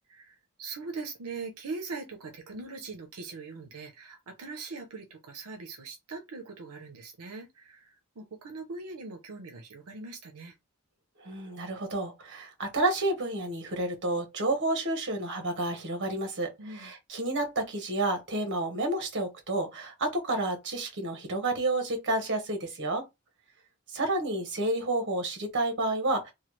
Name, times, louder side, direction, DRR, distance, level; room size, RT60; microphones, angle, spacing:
voice 1, 0.1-10.6 16.6-16.9, right 3 dB, 90° right, 0.6 m, -41 dB
voice 2, 11.2-23.0 23.9-26.3, right 2 dB, 55° right, 1.0 m, -30 dB
3.1 x 2.2 x 3.0 m
head